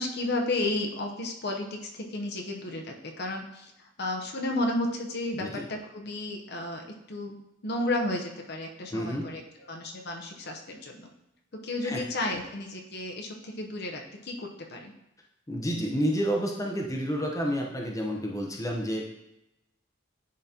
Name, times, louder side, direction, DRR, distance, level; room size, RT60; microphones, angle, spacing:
voice 1, 0.0-7.4 7.6-9.4 9.7-11.1 11.6-14.9, left 2 dB, 55° left, 2 dB, 0.8 m, -32 dB
voice 2, 5.3-5.7 8.9-9.3 11.8-12.0 15.5-19.1, equal, 15° left, -1 dB, 0.7 m, -30 dB
10.5 x 3.9 x 2.9 m, 0.88 s
head